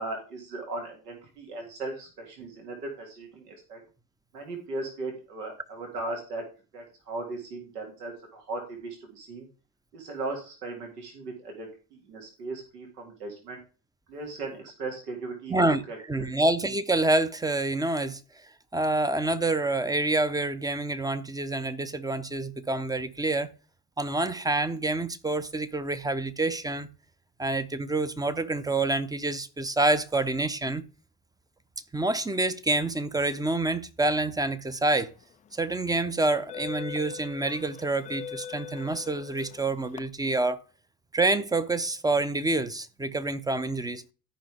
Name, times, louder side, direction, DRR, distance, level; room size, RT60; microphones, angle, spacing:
voice 1, 0.0-3.8 4.3-6.4 6.7-9.5 9.9-13.6 14.1-16.3, right 2 dB, 75° right, 2.4 m, -37 dB
voice 2, 15.5-15.8 16.1-23.5 24.0-26.9 27.4-30.8 31.9-35.1 35.5-40.6 41.1-44.0, right 2 dB, 10° right, 0.8 m, -27 dB
sound 1, 35.2-35.5 36.2-40.0, left 8 dB, 15° left, 0.4 m, -41 dB
14.0 x 5.3 x 3.5 m
figure-of-eight pair, 60°, 49 cm